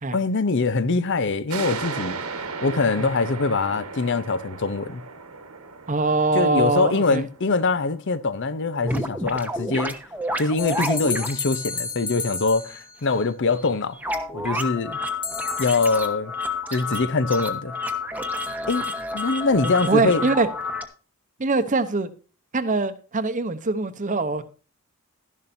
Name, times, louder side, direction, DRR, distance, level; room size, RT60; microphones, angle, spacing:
voice 1, 0.1-2.1 2.6-5.0 6.3-9.9 10.4-14.0 14.3-15.0 15.6-16.3 16.7-17.7 18.7-20.3, left 3 dB, 55° left, 0.7 m, -23 dB
sound 1, 1.5-8.7, right 4 dB, 90° right, 1.4 m, -36 dB
voice 2, 5.9-7.2 19.6-20.5 21.4-22.1 22.5-24.4, right 3 dB, 35° right, 0.8 m, -23 dB
sound 2, 8.8-11.3 11.7-11.8 12.1-12.3 12.7-12.8 13.1-13.2 13.6-13.7 14.0-20.8, left 2 dB, 10° right, 1.0 m, -30 dB
sound 3, 10.6-13.1 15.2-15.9, left 5 dB, 25° left, 1.6 m, -32 dB
12.0 x 11.0 x 2.6 m
head